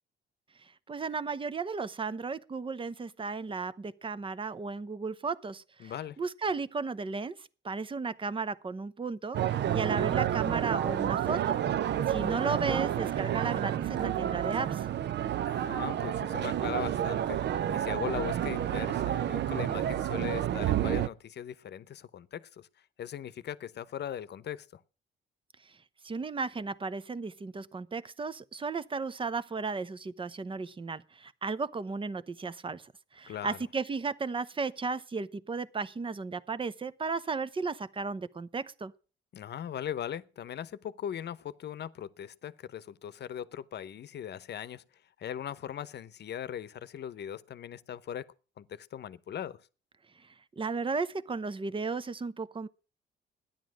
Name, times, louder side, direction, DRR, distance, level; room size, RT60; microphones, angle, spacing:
voice 1, 0.9-11.6 12.1-14.9 26.0-38.9 50.6-52.7, right 4 dB, 25° right, 0.8 m, -34 dB
voice 2, 5.8-6.2 15.4-17.4 17.7-22.7 23.0-24.8 33.3-33.6 39.3-44.8 45.2-48.3 48.6-49.6, left 9 dB, 60° left, 0.8 m, -39 dB
sound 1, 9.3-21.1, right 11 dB, 60° right, 0.6 m, -30 dB
13.0 x 10.5 x 6.2 m
cardioid pair, 90°, 20 cm